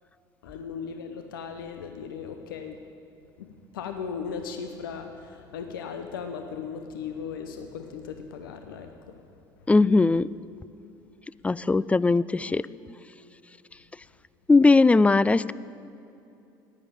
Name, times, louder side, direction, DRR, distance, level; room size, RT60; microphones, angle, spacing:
voice 1, 0.4-2.8 3.4-9.1, left 6 dB, 80° left, 7 dB, 0.7 m, -37 dB
voice 2, 9.7-10.3 11.4-12.6 14.5-15.5, left 3 dB, 10° left, 19 dB, 0.3 m, -19 dB
10.5 x 9.3 x 8.9 m, 2.8 s
hypercardioid pair, 65°, 11 cm